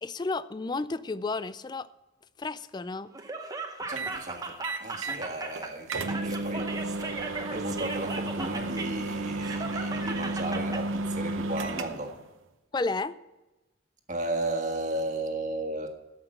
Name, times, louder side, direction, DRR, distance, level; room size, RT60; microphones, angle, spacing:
voice 1, 0.0-1.9 2.4-3.1 12.7-13.1, left 3 dB, 20° left, 16 dB, 0.3 m, -32 dB
Laughter, 3.1-10.8, right 3 dB, 20° right, 0.9 m, -37 dB
voice 2, 3.8-6.8 7.5-12.2 14.1-15.9, right 2 dB, 35° right, 4 dB, 1.5 m, -34 dB
sound 1, 4.0-4.2 4.6-5.2 5.6-5.7 5.9-12.2, right 2 dB, 75° right, 0.8 m, -33 dB
14.0 x 5.9 x 7.9 m, 1.0 s
head